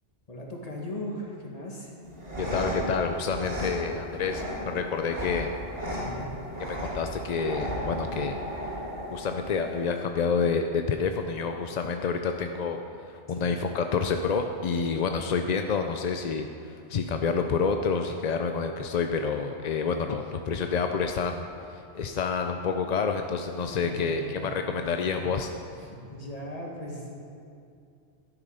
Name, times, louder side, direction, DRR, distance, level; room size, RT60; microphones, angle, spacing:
voice 1, 0.3-1.9 5.9-6.3 13.3-13.6 20.5-20.6 23.7-24.5 24.8-25.3 25.7-27.1, left 1 dB, 35° left, -1 dB, 1.9 m, -38 dB
sound 1, 2.0-10.0, equal, 55° right, 2.6 m, -35 dB
voice 2, 2.4-5.5 6.6-8.3 9.1-12.8 13.1-25.5, left 5 dB, 55° left, 5 dB, 0.5 m, -28 dB
12.0 x 9.8 x 5.5 m, 2.5 s
omnidirectional pair, 1.2 m